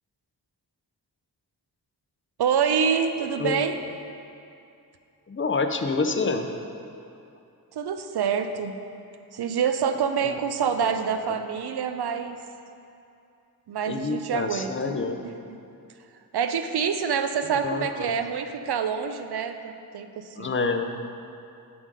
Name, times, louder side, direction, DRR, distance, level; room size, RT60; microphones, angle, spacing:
voice 1, 2.4-3.8 7.7-8.8 9.3-12.4 13.7-14.9 15.2-15.6 16.3-20.5, right 7 dB, 90° right, 8 dB, 0.5 m, -26 dB
voice 2, 5.3-6.5 10.2-10.4 10.8-11.0 13.9-15.2 17.6-18.1 20.4-21.0, left 4 dB, 30° left, 6 dB, 0.5 m, -27 dB
7.3 x 4.8 x 5.3 m, 2.6 s
wide cardioid pair, 60°, 38 cm